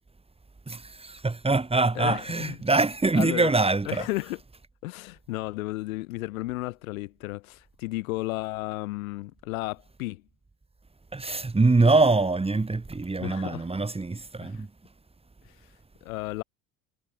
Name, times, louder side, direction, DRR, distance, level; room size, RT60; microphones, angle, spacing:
voice 1, 0.7-4.0 11.1-14.7, right 3 dB, 15° right, 4.3 m, -24 dB
voice 2, 1.9-2.6 3.1-3.5 3.9-4.4 4.8-10.2 13.2-13.9 14.4-14.6 15.5-15.6 16.0-16.4, left 20 dB, 65° left, 3.8 m, -33 dB
figure-of-eight pair, 65°, 45 cm